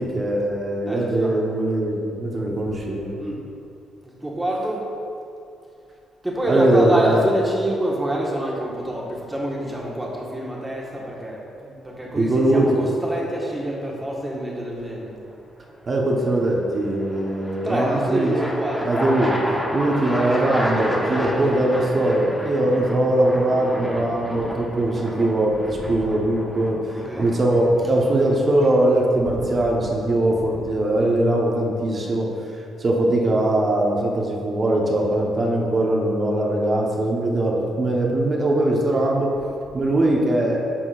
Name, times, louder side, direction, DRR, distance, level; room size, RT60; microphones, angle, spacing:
voice 1, 0.0-3.2 6.5-7.2 12.2-12.8 15.9-18.3 18.8-19.4 19.7-26.8 27.2-32.3 32.8-39.3 39.7-40.6, right 1 dB, 40° right, -2 dB, 1.2 m, -21 dB
voice 2, 0.9-1.4 3.2-3.4 4.0-4.9 6.2-15.1 17.6-19.0 25.7-26.0 26.9-27.3 27.8-27.9 29.2-29.6 30.4-30.6, right 1 dB, 10° right, -3 dB, 1.5 m, -27 dB
sound 1, 12.1-12.5 16.3-30.9, equal, 5° left, 1.0 m, -31 dB
10.0 x 6.0 x 2.5 m, 2.6 s
cardioid pair, 90°, 0 cm